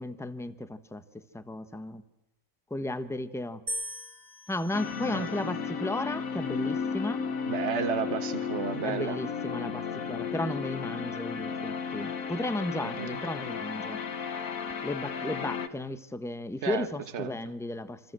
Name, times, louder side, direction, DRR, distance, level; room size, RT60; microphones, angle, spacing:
voice 1, 0.0-2.0 2.7-3.6 4.5-7.3 8.8-14.0 14.8-18.0, left 1 dB, ahead, 0.9 m, -34 dB
sound 1, 3.7-5.9 6.7-7.2, equal, 25° right, 2.5 m, -41 dB
sound 2, 4.7-15.7, left 6 dB, 55° left, 1.7 m, -34 dB
voice 2, 7.5-9.2 12.8-13.2 16.6-16.9 17.1-17.3, right 7 dB, 45° right, 1.5 m, -32 dB
28.0 x 25.5 x 7.7 m
omnidirectional pair, 1.8 m